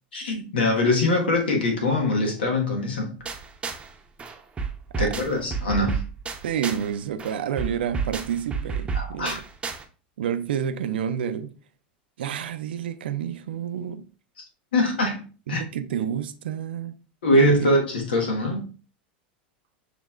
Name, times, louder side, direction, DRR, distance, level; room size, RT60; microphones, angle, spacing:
voice 1, 0.1-3.1 5.0-6.0 8.9-9.4 14.7-15.2 15.5-15.6 17.2-18.6, left 1 dB, 90° left, 1.4 m, -22 dB
sound 1, 3.2-3.9 4.2-6.9 7.2-9.8, right 5 dB, 20° right, 0.7 m, -31 dB
voice 2, 6.4-9.4 10.2-11.5 12.2-14.1 15.5-17.0 17.3-17.7, right 8 dB, 85° right, 0.4 m, -29 dB
6.6 x 3.2 x 2.4 m
hypercardioid pair, 105°, 5 cm